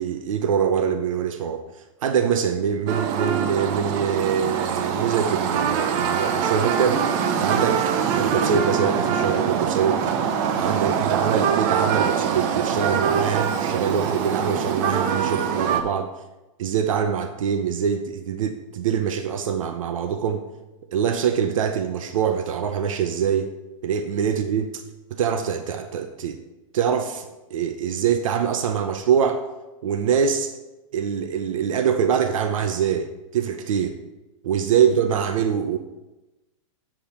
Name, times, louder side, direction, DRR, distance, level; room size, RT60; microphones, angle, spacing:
voice 1, 0.0-1.6 2.0-7.0 7.4-10.0 10.6-16.1 16.6-20.4 20.9-23.5 23.8-24.8 25.1-26.4 26.7-29.4 29.8-30.5 30.9-34.0 34.4-35.8, right 7 dB, 75° right, 7 dB, 0.8 m, -24 dB
sound 1, 2.9-15.8, right 7 dB, 35° right, 0.7 m, -24 dB
8.6 x 7.8 x 4.3 m, 1.0 s
supercardioid pair, 155°, 17 cm